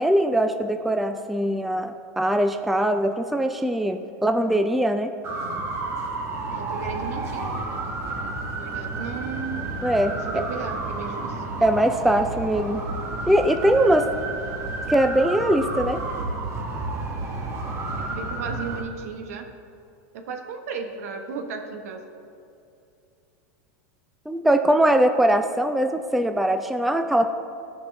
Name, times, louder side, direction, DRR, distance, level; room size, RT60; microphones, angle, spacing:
voice 1, 0.0-5.1 9.8-10.1 11.6-12.8 13.3-14.1 14.9-16.0 24.3-27.3, right 1 dB, ahead, 6 dB, 0.3 m, -21 dB
sound 1, 5.2-18.8, right 2 dB, 35° right, 1.3 m, -31 dB
voice 2, 6.5-7.5 8.2-9.6 10.1-11.4 17.8-19.5 20.1-22.0, right 5 dB, 75° right, 5 dB, 1.1 m, -35 dB
14.5 x 5.3 x 3.3 m, 2.7 s
supercardioid pair, 125°, 8 cm